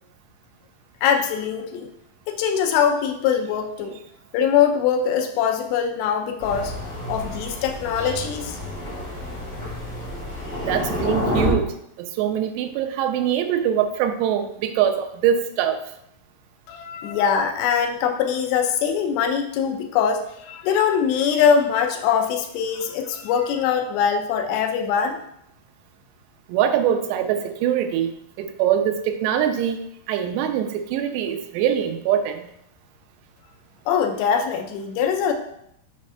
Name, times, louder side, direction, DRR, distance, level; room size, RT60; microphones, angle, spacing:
voice 1, 1.0-1.9 2.3-4.0 4.3-6.7 7.0-8.6 16.7-25.2 33.9-35.3, left 7 dB, 85° left, 5 dB, 2.9 m, -22 dB
Thunder, 6.4-11.5, left 1 dB, 50° left, 0.8 m, -29 dB
voice 2, 10.6-15.8 26.5-32.5, right 9 dB, 85° right, 7 dB, 2.8 m, -23 dB
7.2 x 3.2 x 5.5 m, 0.75 s
omnidirectional pair, 4.8 m